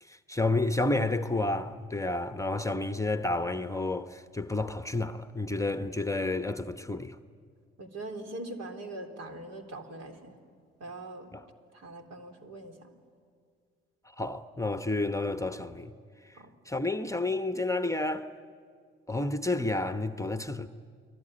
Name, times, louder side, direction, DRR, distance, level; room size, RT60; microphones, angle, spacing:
voice 1, 0.0-7.2 11.3-11.5 14.0-15.9 16.2-18.3 19.1-20.7, left 2 dB, 10° left, 1.0 m, -30 dB
voice 2, 7.8-10.4 10.8-11.3 11.7-12.9 16.4-16.5, right 2 dB, 60° right, 3.6 m, -42 dB
29.5 x 20.0 x 9.9 m
hypercardioid pair, 55°, 29 cm